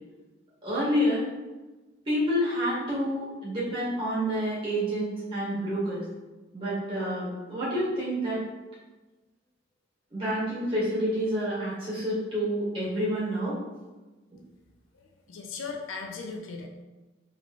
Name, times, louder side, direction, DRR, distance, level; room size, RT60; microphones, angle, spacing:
voice 1, 0.6-1.2 2.0-6.0 6.5-8.4 10.1-13.6, equal, 25° right, -8 dB, 1.4 m, -28 dB
voice 2, 14.9-16.7, left 4 dB, 85° left, 2 dB, 0.5 m, -38 dB
3.0 x 2.9 x 2.5 m, 1.2 s
head